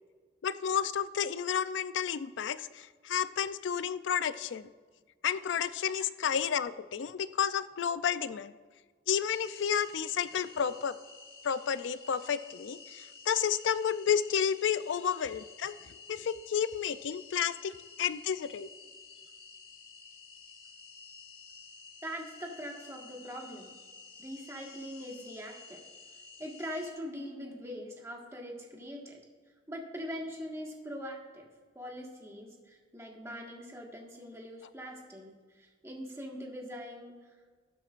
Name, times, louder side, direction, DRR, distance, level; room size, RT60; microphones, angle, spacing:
voice 1, 0.4-4.7 5.2-8.5 9.1-11.0 11.4-15.8 16.1-17.7 18.0-18.7, left 8 dB, 90° left, 14 dB, 0.4 m, -31 dB
sound 1, 9.3-26.9, left 4 dB, 55° left, 1.3 m, -52 dB
voice 2, 22.0-23.7 24.2-25.8 26.4-29.2 29.7-31.5 31.7-37.1, equal, 15° right, -1 dB, 1.5 m, -42 dB
19.0 x 7.5 x 2.5 m, 1.5 s
head